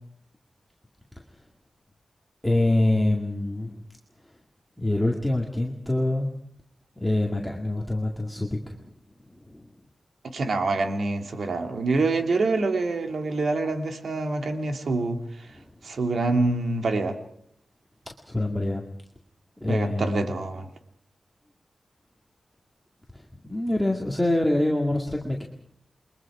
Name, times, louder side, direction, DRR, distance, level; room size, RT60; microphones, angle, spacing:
voice 1, 2.4-3.8 4.8-6.3 7.0-8.9 9.4-9.7 15.5-15.6 18.3-18.8 19.6-20.4 23.4-25.4, left 1 dB, 5° left, -1 dB, 2.1 m, -25 dB
voice 2, 10.3-15.5 15.8-17.2 19.7-20.7, right 3 dB, 70° right, 5 dB, 2.4 m, -26 dB
29.0 x 22.5 x 4.9 m, 0.68 s
wide cardioid pair, 145°, 0 cm